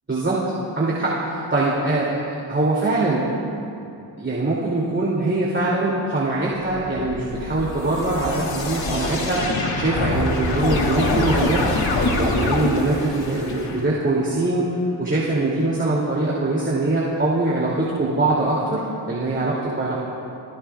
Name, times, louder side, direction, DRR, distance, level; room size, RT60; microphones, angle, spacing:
voice 1, 0.1-0.4 0.8-2.1 2.5-3.3 3.8-11.6 12.2-14.7 15.0-18.8 19.1-20.0, right 2 dB, 25° right, -6 dB, 2.8 m, -22 dB
sound 1, 6.7-13.8, left 2 dB, 80° left, 2.6 m, -25 dB
29.0 x 18.5 x 2.4 m, 2.7 s
wide cardioid pair, 120°, 44 cm